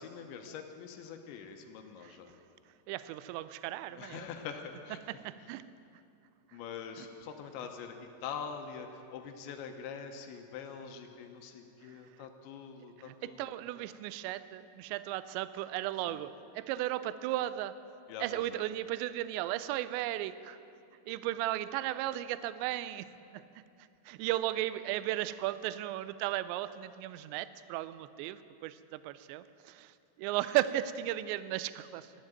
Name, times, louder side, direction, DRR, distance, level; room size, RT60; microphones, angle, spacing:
voice 1, 0.0-2.3 3.9-5.0 6.5-13.5 16.1-16.2 18.1-18.6, left 6 dB, 75° left, 5 dB, 3.1 m, -44 dB
voice 2, 2.9-4.3 5.2-5.7 7.0-7.1 11.8-12.0 13.0-17.7 18.2-20.6 21.1-23.1 23.3-23.5 23.8-32.1, right 14 dB, 85° right, 14 dB, 2.7 m, -35 dB
13.5 x 11.5 x 9.0 m, 2.6 s
omnidirectional pair, 5.5 m